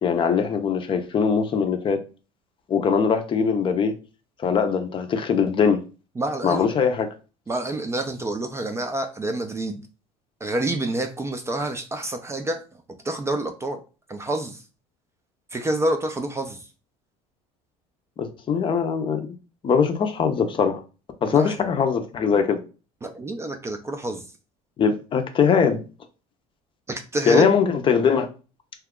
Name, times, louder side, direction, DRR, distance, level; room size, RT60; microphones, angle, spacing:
voice 1, 0.0-2.0 2.7-3.9 4.4-5.8 6.4-7.1 18.2-19.2 19.6-20.8 21.2-22.6 24.8-25.8 27.3-28.3, left 6 dB, 35° left, 0.5 m, -21 dB
voice 2, 6.2-6.7 7.5-9.8 10.4-13.8 14.1-14.6 15.5-16.7 21.3-21.6 23.0-24.3 26.9-27.5, right 2 dB, 20° right, 0.4 m, -28 dB
2.8 x 2.3 x 3.6 m
cardioid pair, 120°, 15 cm